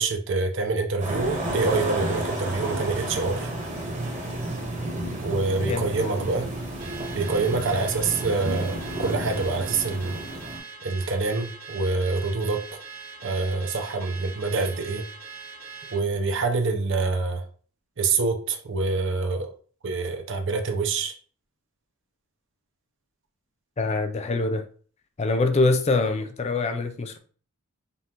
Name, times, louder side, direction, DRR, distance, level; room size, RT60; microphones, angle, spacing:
voice 1, 0.0-3.5 5.2-6.5 7.1-10.2 10.8-12.6 13.2-15.0 15.9-17.4 18.0-19.5 19.8-21.1, right 3 dB, 55° right, 5 dB, 0.7 m, -26 dB
sound 1, 1.0-10.6, right 1 dB, 35° right, 1.0 m, -32 dB
voice 2, 5.7-6.1 23.8-24.6 25.2-27.2, left 3 dB, 30° left, 7 dB, 0.3 m, -24 dB
Car / Alarm, 6.8-16.0, right 5 dB, 70° right, 1.5 m, -42 dB
5.4 x 2.5 x 2.9 m, 0.42 s
head